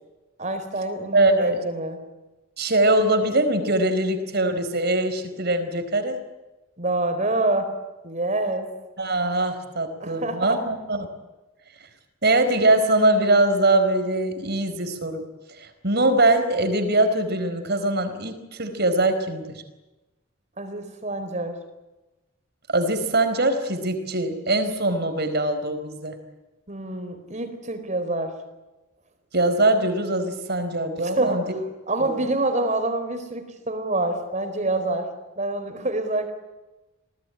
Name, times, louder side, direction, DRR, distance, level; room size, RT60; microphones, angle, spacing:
voice 1, 0.4-2.0 6.8-7.7 8.0-8.7 10.0-10.6 20.6-21.6 26.7-28.4 31.0-31.4 31.9-35.1 35.4-36.3, right 2 dB, 35° right, 8 dB, 4.4 m, -26 dB
voice 2, 1.1-1.6 2.6-6.2 9.0-11.1 12.2-15.2 15.6-19.6 22.7-26.2 29.3-31.6 32.0-32.1, right 2 dB, 55° right, 9 dB, 4.5 m, -22 dB
29.0 x 19.5 x 10.0 m, 1.1 s
head